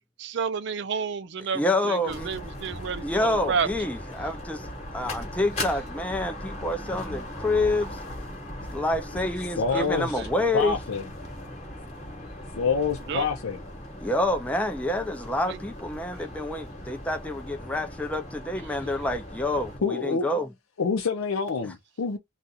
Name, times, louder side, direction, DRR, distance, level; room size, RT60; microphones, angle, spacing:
voice 1, 0.2-3.7 9.7-10.3 13.1-13.3 15.5-15.6, right 6 dB, 55° right, 0.4 m, -31 dB
voice 2, 1.5-2.3 3.0-4.7 4.9-8.0 8.7-10.8 14.0-20.5 21.6-21.7, left 1 dB, 5° left, 0.4 m, -28 dB
sound 1, 2.1-19.8, left 1 dB, 30° left, 1.0 m, -38 dB
voice 3, 9.6-10.2 10.5-11.0 12.5-13.6 19.8-20.3 20.8-22.2, left 5 dB, 85° left, 0.5 m, -27 dB
2.4 x 2.4 x 4.0 m
head